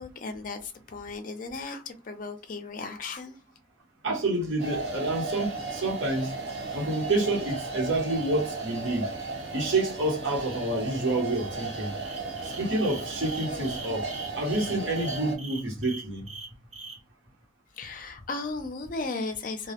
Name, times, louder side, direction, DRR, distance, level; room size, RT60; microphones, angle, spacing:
voice 1, 0.0-3.4 17.8-19.7, left 3 dB, 45° left, 0.4 m, -36 dB
voice 2, 4.0-6.3 6.7-9.1 9.5-11.9 12.4-14.1 14.3-16.3, right 2 dB, 80° right, 1.0 m, -28 dB
sound 1, 4.6-15.4, right 3 dB, 55° right, 0.9 m, -35 dB
sound 2, 12.0-17.0, right 3 dB, 35° right, 0.4 m, -42 dB
2.2 x 2.0 x 2.8 m
head